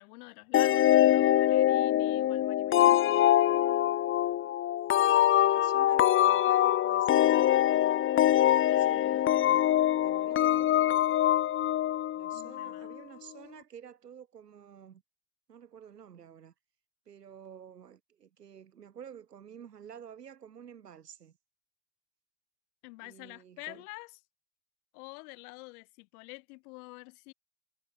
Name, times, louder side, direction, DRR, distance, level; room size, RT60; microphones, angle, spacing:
voice 1, 0.0-3.3 8.7-9.3 12.3-13.0 22.8-24.2 24.9-27.3, left 26 dB, 65° left, 2.0 m, -48 dB
sound 1, 0.5-12.9, left 12 dB, 30° left, 0.6 m, -24 dB
voice 2, 4.9-7.4 8.4-9.6 10.0-10.7 12.1-15.0 15.5-16.5 17.1-21.3 23.0-23.8, right 8 dB, 80° right, 4.3 m, -50 dB
figure-of-eight pair, 60°, 47 cm